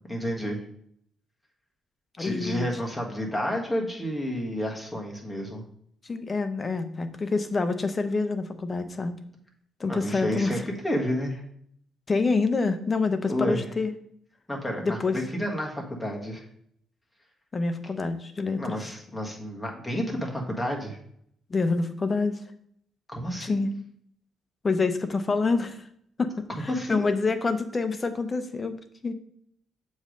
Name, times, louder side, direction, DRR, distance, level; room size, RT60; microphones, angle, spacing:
voice 1, 0.1-0.6 2.2-5.6 9.9-11.4 13.3-13.6 14.5-16.4 18.6-21.0 23.1-23.6 26.7-27.1, equal, 10° left, -1 dB, 1.6 m, -30 dB
voice 2, 2.2-2.7 6.0-9.2 9.8-10.6 12.1-13.9 14.8-15.2 17.5-18.8 21.5-22.4 23.4-23.7 24.6-25.8 26.2-26.3 26.6-28.7 29.0-29.1, left 3 dB, 30° left, 9 dB, 0.7 m, -27 dB
7.2 x 3.2 x 5.1 m, 0.68 s
cardioid pair, 90°, 0 cm